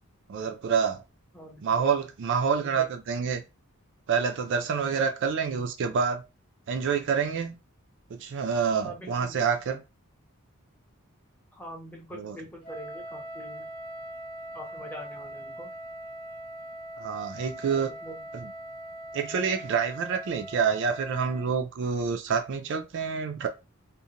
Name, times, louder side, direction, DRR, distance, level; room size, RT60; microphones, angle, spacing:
voice 1, 0.3-1.0 1.6-3.4 4.1-6.2 6.7-7.6 8.1-9.8 12.1-12.4 17.0-17.9 18.3-18.5 19.1-23.5, right 6 dB, 55° right, 0.3 m, -27 dB
voice 2, 1.3-1.9 2.6-2.9 4.9-5.0 8.8-9.4 11.5-13.7 14.5-15.7 17.7-18.2, equal, 5° left, 0.5 m, -44 dB
Wind instrument woodwind instrument, 12.6-21.5, right 1 dB, 25° left, 0.9 m, -41 dB
2.5 x 2.1 x 2.8 m
head